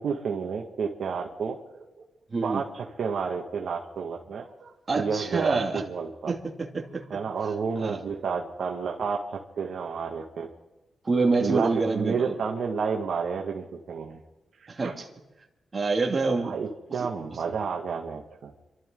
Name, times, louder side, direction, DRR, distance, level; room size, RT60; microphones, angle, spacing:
voice 1, 0.0-1.8 2.4-6.3 7.1-9.2 9.6-10.5 11.4-14.2 14.8-15.0 16.4-18.5, right 5 dB, 70° right, 1 dB, 1.9 m, -30 dB
voice 2, 2.3-2.6 4.9-5.8 6.3-7.0 7.8-8.0 11.0-12.3 14.7-15.1 15.7-16.6, right 3 dB, 35° right, 2 dB, 2.6 m, -26 dB
27.0 x 13.0 x 3.9 m, 1.0 s
cardioid pair, 90°, 0 cm